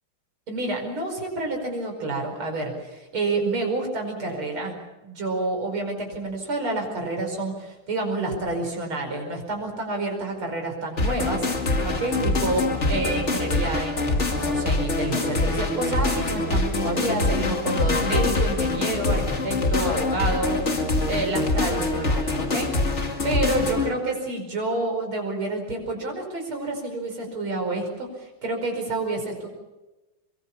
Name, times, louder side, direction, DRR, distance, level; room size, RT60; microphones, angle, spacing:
voice 1, 0.5-4.8 5.0-11.5 11.8-20.6 21.1-22.9 23.2-29.5, right 2 dB, 85° right, 2 dB, 6.0 m, -29 dB
sound 1, 11.0-23.9, left 2 dB, 35° left, 2.5 m, -24 dB
24.0 x 23.0 x 7.2 m, 1.0 s
omnidirectional pair, 2.3 m